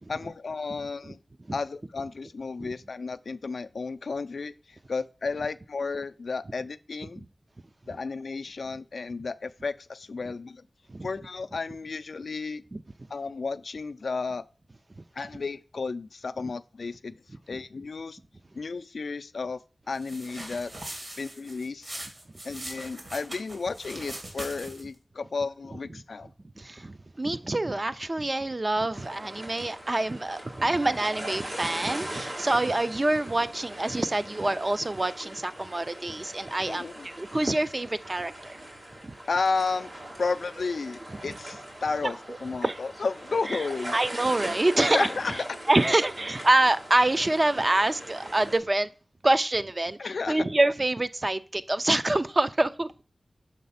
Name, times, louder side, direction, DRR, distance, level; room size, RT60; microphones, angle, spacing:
voice 1, 0.1-1.2 1.5-7.2 7.9-10.6 11.0-12.6 13.1-14.5 15.1-17.2 17.5-18.2 18.5-19.6 19.9-20.7 21.2-22.0 22.4-26.3 36.7-37.1 39.3-39.9 40.2-43.9 44.8-45.6 50.0-50.4, left 4 dB, 90° left, 0.3 m, -32 dB
sound 1, 19.9-25.0, right 1 dB, 60° right, 2.1 m, -41 dB
voice 2, 26.6-38.6 39.0-39.1 42.0-42.1 42.6-42.8 43.5-43.6 43.9-45.1 45.7-48.9 49.2-50.0 50.3-52.9, right 2 dB, 35° right, 0.4 m, -26 dB
sound 2, 28.9-48.6, right 1 dB, 80° right, 1.7 m, -40 dB
6.6 x 3.3 x 5.6 m
wide cardioid pair, 80°, 0 cm